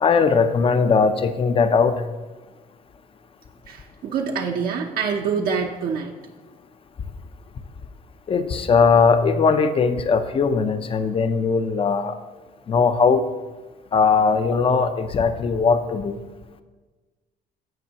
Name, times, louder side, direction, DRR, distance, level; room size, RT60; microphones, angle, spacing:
voice 1, 0.0-2.0 8.3-12.2 12.7-13.3 13.9-16.2, left 5 dB, 35° left, 10 dB, 0.6 m, -19 dB
voice 2, 3.7-6.1, right 6 dB, 60° right, 1 dB, 0.8 m, -26 dB
15.5 x 5.4 x 2.9 m, 1.3 s
cardioid pair, 110°, 17 cm